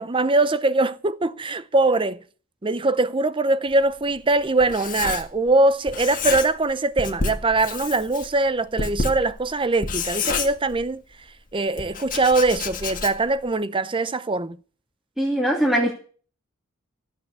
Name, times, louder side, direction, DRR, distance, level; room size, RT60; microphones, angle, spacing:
voice 1, 0.0-2.2 2.6-11.0 11.5-14.6, right 2 dB, 25° right, 0.6 m, -22 dB
Writing, 3.7-5.6 5.9-6.7 7.0-11.1 11.8-13.4, left 4 dB, 40° left, 1.8 m, -29 dB
voice 2, 15.2-15.9, equal, ahead, 2.5 m, -21 dB
14.5 x 7.5 x 8.4 m
head